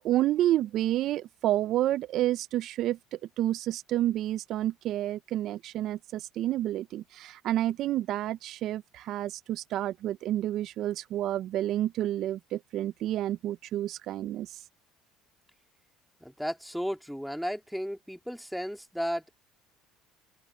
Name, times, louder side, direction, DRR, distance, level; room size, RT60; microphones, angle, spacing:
voice 1, 0.0-14.7, right 13 dB, 60° right, 0.4 m, -29 dB
voice 2, 16.2-19.4, equal, ahead, 2.4 m, -34 dB
open air
cardioid pair, 115°, 0 cm